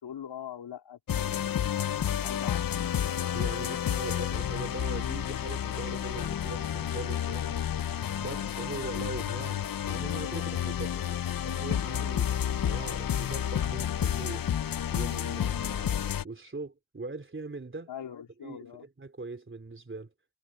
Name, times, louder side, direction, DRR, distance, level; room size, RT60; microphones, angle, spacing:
voice 1, 0.0-2.9 17.9-18.9, left 9 dB, 75° left, 3.5 m, -43 dB
sound 1, 1.1-16.2, left 10 dB, 50° left, 0.8 m, -30 dB
voice 2, 3.3-7.6 8.2-14.5 14.9-17.9 18.4-20.1, right 3 dB, 30° right, 3.1 m, -41 dB
cardioid pair, 80°, 43 cm